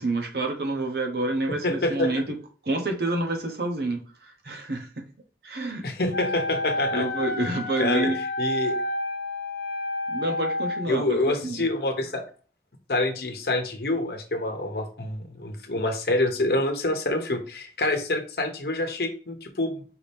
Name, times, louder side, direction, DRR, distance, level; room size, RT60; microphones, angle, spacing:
voice 1, 0.0-2.4 2.6-5.1 5.4-5.9 6.9-8.2 10.1-11.6, right 2 dB, 65° right, 0.9 m, -28 dB
voice 2, 1.6-2.1 5.8-7.1 7.8-8.1 8.4-8.7 10.9-12.2 12.9-19.8, left 2 dB, 60° left, 0.9 m, -26 dB
Wind instrument woodwind instrument, 6.1-10.9, left 2 dB, 80° left, 0.6 m, -30 dB
4.8 x 2.7 x 3.5 m
head